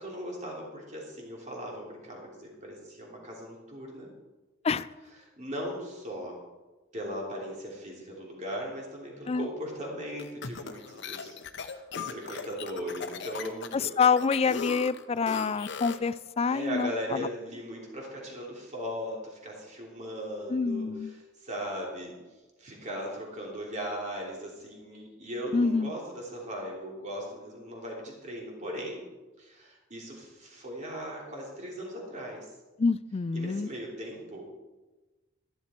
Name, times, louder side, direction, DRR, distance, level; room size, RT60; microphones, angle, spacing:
voice 1, 0.0-4.1 5.4-6.4 6.9-14.0 16.5-22.1 22.6-29.0 29.4-32.5 33.3-34.5, equal, 35° right, -2 dB, 3.1 m, -38 dB
sound 1, 10.2-16.1, left 6 dB, 60° left, 0.8 m, -38 dB
voice 2, 13.7-17.3 20.5-21.1 25.5-25.9 32.8-33.7, left 5 dB, 30° left, 17 dB, 0.3 m, -27 dB
13.5 x 11.5 x 4.4 m, 1.2 s
head